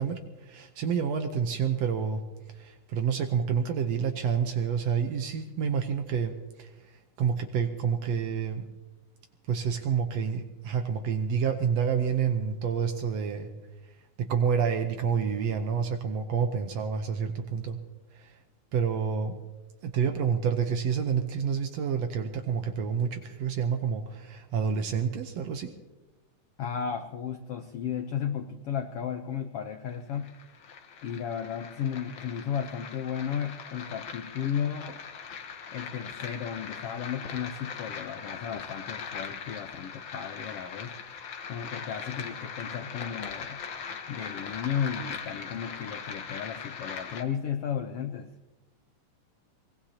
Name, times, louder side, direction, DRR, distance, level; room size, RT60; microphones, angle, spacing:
voice 1, 0.0-2.2 2.5-6.7 7.2-8.7 9.5-13.5 14.2-17.8 18.1-18.4 18.7-19.4 19.8-25.7, right 7 dB, 65° right, 6 dB, 1.8 m, -28 dB
voice 2, 26.6-30.3 31.0-35.0 35.7-40.9 41.5-43.6 44.1-48.3, left 8 dB, 80° left, 7 dB, 1.3 m, -34 dB
sound 1, 29.9-47.2, left 6 dB, 60° left, 1.3 m, -40 dB
24.0 x 20.5 x 2.9 m, 1.1 s
omnidirectional pair, 3.7 m